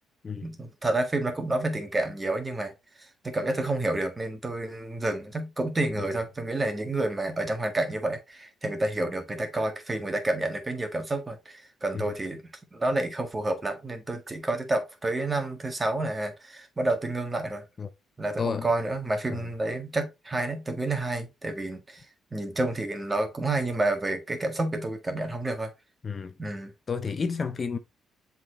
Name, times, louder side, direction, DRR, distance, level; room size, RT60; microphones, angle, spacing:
voice 1, 0.4-2.7 3.0-12.4 12.7-17.6 18.2-22.1 22.3-25.7 26.4-26.7, right 2 dB, 20° right, 1.7 m, -29 dB
voice 2, 26.9-27.8, left 5 dB, 40° left, 0.7 m, -31 dB
7.4 x 4.2 x 3.0 m
cardioid pair, 90°, 0 cm